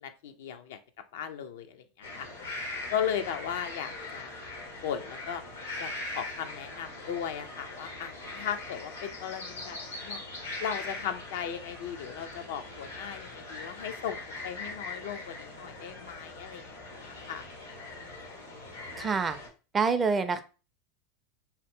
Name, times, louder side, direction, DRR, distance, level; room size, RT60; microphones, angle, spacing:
voice 1, 0.0-0.8 1.1-2.6 2.9-4.4 4.8-5.4 5.8-10.2 10.6-16.7 17.1-17.5, left 8 dB, 70° left, 8 dB, 0.4 m, -37 dB
sound 1, 2.0-19.5, left 2 dB, 90° left, 1.0 m, -41 dB
voice 2, 19.0-19.4 19.7-20.4, right 5 dB, 25° right, 10 dB, 0.4 m, -26 dB
2.8 x 2.0 x 3.5 m, 0.33 s
hypercardioid pair, 90°, 0 cm